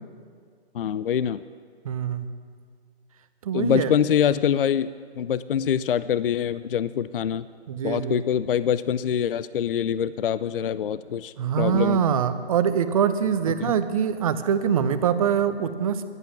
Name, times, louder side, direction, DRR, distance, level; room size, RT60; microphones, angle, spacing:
voice 1, 0.7-1.4 3.5-7.5 7.8-12.0 13.6-13.7, left 9 dB, 55° left, 15 dB, 0.4 m, -25 dB
voice 2, 1.8-2.3 3.4-3.9 7.7-8.2 11.4-16.1, right 8 dB, 35° right, 10 dB, 0.7 m, -24 dB
11.0 x 11.0 x 7.2 m, 2.1 s
hypercardioid pair, 150°, 33 cm